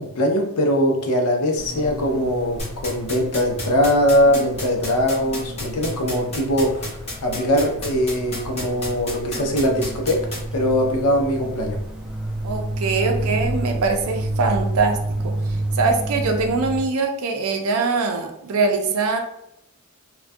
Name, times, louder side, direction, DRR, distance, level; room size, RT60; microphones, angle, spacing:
voice 1, 0.0-11.8, equal, 90° left, 2 dB, 0.5 m, -21 dB
sound 1, 1.6-16.8, right 1 dB, 5° right, 0.3 m, -30 dB
sound 2, 2.6-10.4, left 2 dB, 30° left, 0.7 m, -30 dB
voice 2, 12.4-19.2, right 4 dB, 70° right, 4 dB, 0.4 m, -23 dB
2.2 x 2.2 x 2.5 m, 0.78 s
head